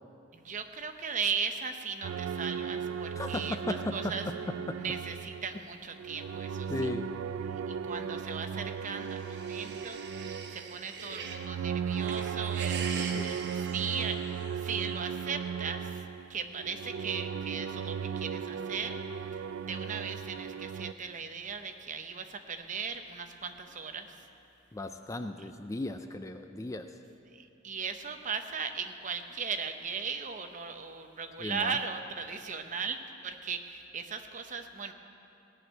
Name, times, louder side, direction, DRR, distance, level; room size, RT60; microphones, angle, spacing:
voice 1, 0.3-4.2 4.8-6.7 7.5-19.0 19.7-24.3 27.3-34.9, right 5 dB, 40° right, 7 dB, 0.8 m, -38 dB
sound 1, 2.0-5.6 5.9-20.9, right 7 dB, 80° right, 0.3 m, -36 dB
voice 2, 3.1-4.1 4.7-4.8 6.7-7.1 13.1-13.4 24.7-27.0 31.4-31.8, left 2 dB, 15° left, 8 dB, 0.4 m, -36 dB
sound 2, 8.8-11.5 11.9-14.7, right 5 dB, 60° right, 1.0 m, -42 dB
17.5 x 6.3 x 9.0 m, 2.7 s
head